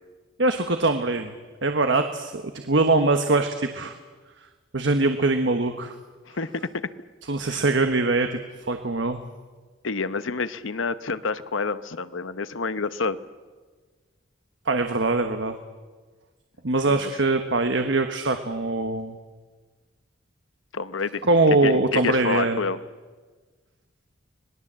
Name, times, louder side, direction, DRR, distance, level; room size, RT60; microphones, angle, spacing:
voice 1, 0.4-1.3 1.6-3.9 4.7-6.0 7.3-8.4 8.7-9.2 14.7-15.6 16.6-19.2 21.3-22.6, right 2 dB, 65° right, 6 dB, 1.3 m, -22 dB
voice 2, 6.4-6.9 7.5-7.6 9.8-13.2 16.9-17.1 20.7-21.2 21.6-22.8, left 4 dB, 85° left, 13 dB, 0.9 m, -28 dB
26.0 x 20.0 x 7.6 m, 1.4 s
head